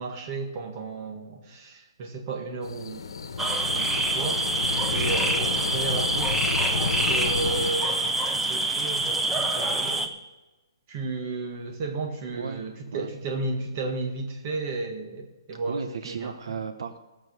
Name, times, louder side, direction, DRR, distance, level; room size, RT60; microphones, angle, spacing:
voice 1, 0.0-3.1 3.7-6.6 6.8-10.1 10.9-16.4, right 3 dB, 30° right, 3 dB, 1.8 m, -34 dB
sound 1, 2.6-7.7, left 5 dB, 70° left, 1.2 m, -31 dB
sound 2, 3.4-10.1, right 2 dB, 5° right, 0.6 m, -26 dB
voice 2, 12.3-12.6 12.9-13.1 15.7-17.0, right 5 dB, 75° right, 8 dB, 1.0 m, -34 dB
16.0 x 7.6 x 6.4 m, 1.1 s
hypercardioid pair, 160°, 3 cm